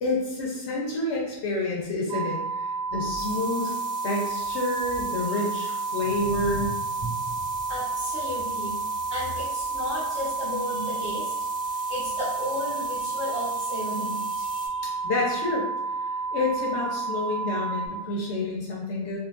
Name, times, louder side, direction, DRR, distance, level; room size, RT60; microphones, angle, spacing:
voice 1, 0.0-3.8 4.0-6.7 14.8-15.7 16.3-19.2, left 2 dB, 80° left, -4 dB, 1.0 m, -29 dB
sound 1, 2.1-17.9, right 4 dB, 55° right, 0.6 m, -30 dB
sound 2, 3.2-14.7, equal, 5° left, 0.5 m, -43 dB
voice 2, 6.0-6.7 7.0-7.4 7.7-14.9, left 1 dB, 75° right, -13 dB, 1.5 m, -34 dB
3.5 x 2.5 x 2.4 m, 0.94 s
omnidirectional pair, 1.1 m